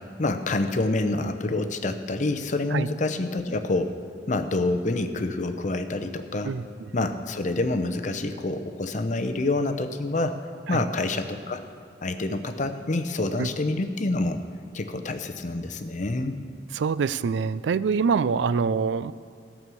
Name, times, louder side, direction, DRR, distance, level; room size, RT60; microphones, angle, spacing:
voice 1, 0.2-4.0 4.3-6.5 6.9-10.4 10.7-11.6 12.0-14.4 14.7-16.4, left 2 dB, 45° left, 8 dB, 0.7 m, -27 dB
voice 2, 6.4-6.9 10.7-10.8 13.4-13.5 16.7-19.1, right 5 dB, 80° right, 16 dB, 0.4 m, -25 dB
14.5 x 6.3 x 6.9 m, 2.3 s
head